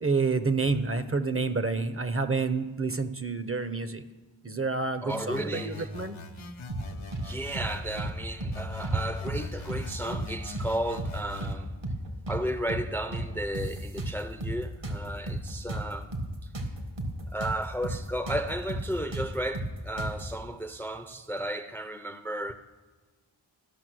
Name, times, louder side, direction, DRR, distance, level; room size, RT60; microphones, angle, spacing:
voice 1, 0.0-4.0 4.4-6.1, right 4 dB, 30° right, 0.7 m, -28 dB
voice 2, 5.0-5.9 7.2-11.7 12.3-16.1 17.3-22.5, right 1 dB, 5° left, 0.6 m, -34 dB
sound 1, 5.1-8.1 8.5-11.5, left 3 dB, 85° left, 0.9 m, -42 dB
sound 2, 6.7-7.3 7.5-7.7 8.0-9.0 9.3-9.4 9.7-10.7 11.0-11.1 11.4-12.4 12.7-12.9 13.1-14.6 14.8-17.6 17.8-18.0 18.3-20.3, right 1 dB, 65° right, 1.8 m, -33 dB
13.0 x 5.8 x 6.2 m
wide cardioid pair, 50°, 47 cm